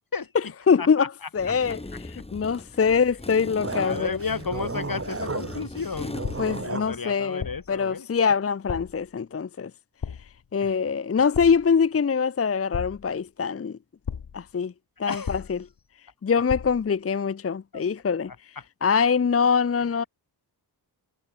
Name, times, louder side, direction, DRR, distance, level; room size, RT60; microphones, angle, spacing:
voice 1, 0.3-4.1 6.4-9.7 10.5-13.8 14.3-14.7 15.0-15.7 16.2-18.3 18.8-20.0, left 6 dB, 35° left, 0.6 m, -24 dB
sound 1, 1.4-6.7, left 2 dB, 15° left, 1.6 m, -39 dB
voice 2, 3.6-6.2 6.6-8.1 10.6-10.7 15.0-15.4 17.7-17.8, left 5 dB, 50° left, 5.3 m, -33 dB
sound 2, 3.6-7.0, right 3 dB, 30° right, 5.3 m, -34 dB
sound 3, 6.2-6.7 7.4-7.8 8.7-9.1 10.0-10.5 11.3-11.8 12.7-13.3 14.0-14.5 15.2-15.8 16.5-16.9, left 6 dB, 70° left, 3.5 m, -35 dB
wide cardioid pair, 150°, 43 cm